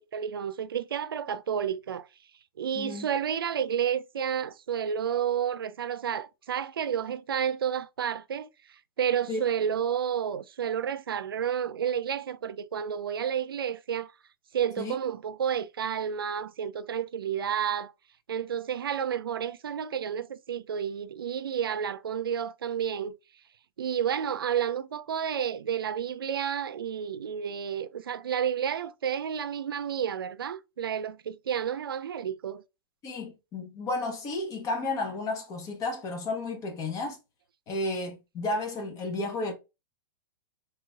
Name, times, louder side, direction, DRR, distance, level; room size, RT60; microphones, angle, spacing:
voice 1, 0.0-2.1 2.6-14.1 14.5-17.9 18.3-23.1 23.8-32.6, right 8 dB, 90° right, 0.4 m, -31 dB
voice 2, 2.7-3.1 9.3-9.4 14.8-15.0 33.0-37.2 37.7-39.5, left 2 dB, 30° left, 1.1 m, -32 dB
3.3 x 3.0 x 2.3 m
hypercardioid pair, 125°, 12 cm